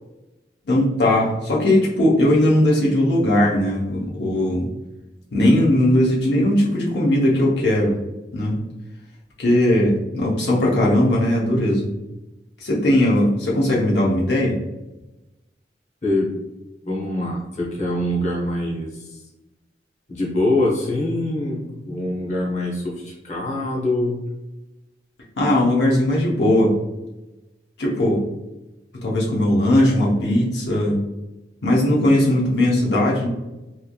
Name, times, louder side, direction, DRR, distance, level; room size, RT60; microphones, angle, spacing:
voice 1, 0.7-4.7 5.3-8.0 8.3-8.6 9.4-11.9 12.6-14.6 25.4-26.7 27.8-28.2 29.0-31.0 31.6-33.3, left 1 dB, 75° left, -4 dB, 0.7 m, -18 dB
voice 2, 16.8-19.2 20.1-24.2, left 1 dB, 40° left, -3 dB, 0.8 m, -24 dB
3.0 x 2.5 x 2.2 m, 1.0 s
head